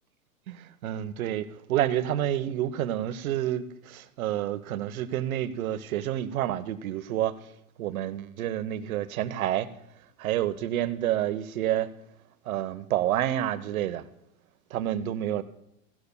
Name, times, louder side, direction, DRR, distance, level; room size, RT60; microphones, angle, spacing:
voice 1, 0.5-7.4 7.8-9.7 10.2-11.9 12.4-14.0 14.7-15.4, right 12 dB, 70° right, 1.0 m, -29 dB
16.5 x 12.0 x 2.2 m
hypercardioid pair, 135°, 43 cm